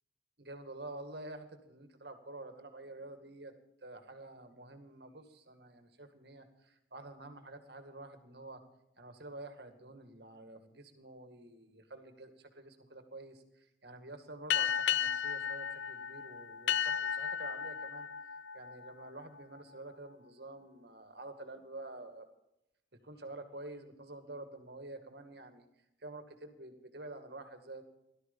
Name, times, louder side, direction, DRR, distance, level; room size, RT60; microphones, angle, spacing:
voice 1, 0.4-3.5 3.8-8.6 9.0-18.1 18.5-22.3 23.0-25.6 26.0-27.8, right 2 dB, 55° right, 7 dB, 2.1 m, -49 dB
sound 1, 14.5-19.6, left 8 dB, 70° left, 0.5 m, -34 dB
17.5 x 12.5 x 5.4 m, 0.82 s
head